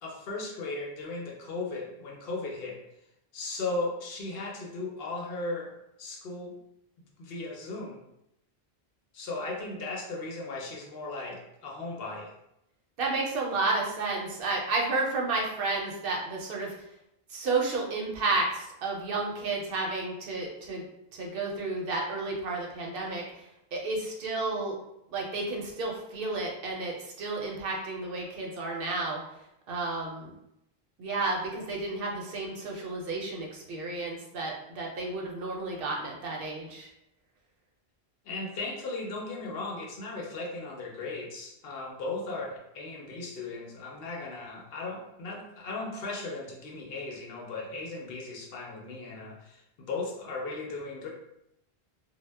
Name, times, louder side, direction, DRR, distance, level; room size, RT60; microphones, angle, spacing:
voice 1, 0.0-2.8 3.3-5.7 6.0-6.6 7.2-8.0 9.1-12.3 38.3-51.1, left 3 dB, 70° left, -1 dB, 0.8 m, -36 dB
voice 2, 13.0-16.7 17.3-20.8 21.1-23.2 23.7-24.7 25.1-29.2 29.7-30.3 31.0-36.9, right 3 dB, 65° right, -1 dB, 0.7 m, -31 dB
2.1 x 2.0 x 3.2 m, 0.82 s
omnidirectional pair, 1.1 m